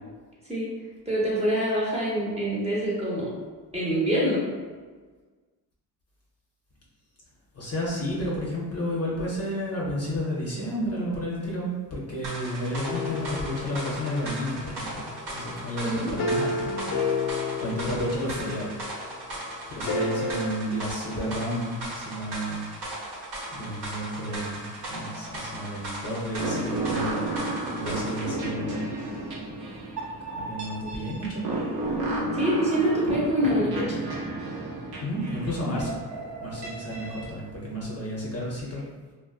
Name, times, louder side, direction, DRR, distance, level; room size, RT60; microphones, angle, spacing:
voice 1, 1.1-3.3 3.7-4.4 15.8-16.1 32.3-34.0, equal, 15° right, -7 dB, 0.8 m, -25 dB
voice 2, 7.5-16.7 17.2-18.8 19.7-22.7 23.5-27.4 27.7-28.9 30.3-31.5 35.0-36.0 36.4-38.8, equal, 35° left, -5 dB, 0.6 m, -31 dB
sound 1, 12.2-28.4, right 1 dB, 90° right, 0.9 m, -37 dB
sound 2, 12.8-19.1 19.8-20.5, left 3 dB, 90° left, 0.6 m, -32 dB
sound 3, 26.4-37.3, right 2 dB, 60° right, 0.8 m, -32 dB
2.5 x 2.1 x 2.3 m, 1.4 s
cardioid pair, 80°, 42 cm